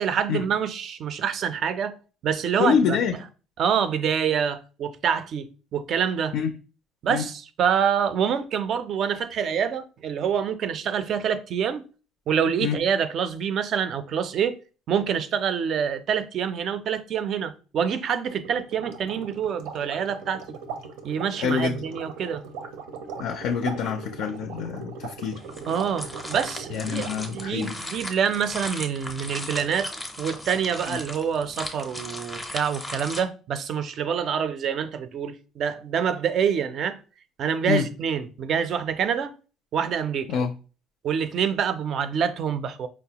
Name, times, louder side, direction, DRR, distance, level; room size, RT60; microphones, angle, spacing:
voice 1, 0.0-2.0 2.2-3.0 3.6-6.3 7.0-11.8 12.3-14.6 14.9-20.6 21.0-22.4 25.7-29.9 30.2-37.0 37.4-39.3 39.7-40.4 41.0-42.9, right 7 dB, 45° right, 0.4 m, -26 dB
voice 2, 2.6-3.1 6.3-6.5 7.1-7.2 12.6-12.8 21.4-21.8 23.2-25.4 26.7-27.8 30.9-31.0 37.7-37.8 40.3-40.5, left 7 dB, 65° left, 0.3 m, -26 dB
sound 1, 18.4-27.9, right 5 dB, 85° right, 0.6 m, -39 dB
sound 2, 25.2-33.2, left 1 dB, 5° left, 0.5 m, -37 dB
4.6 x 2.0 x 2.8 m
cardioid pair, 150°, 0 cm